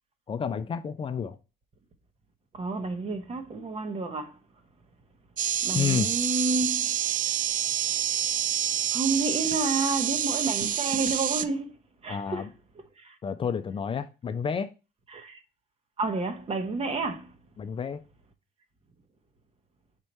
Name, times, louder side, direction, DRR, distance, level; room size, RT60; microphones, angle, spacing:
voice 1, 0.3-1.4 5.7-6.1 12.1-12.5 13.2-14.7 17.6-18.0, left 7 dB, 30° left, 0.5 m, -30 dB
voice 2, 2.5-4.3 5.6-6.9 8.9-11.7 12.0-12.5 13.0-13.1 15.1-15.4 16.0-17.3, right 3 dB, 35° right, 1.1 m, -30 dB
sound 1, 5.4-11.4, right 10 dB, 50° right, 0.5 m, -27 dB
5.0 x 4.5 x 4.2 m
cardioid pair, 110°, 17 cm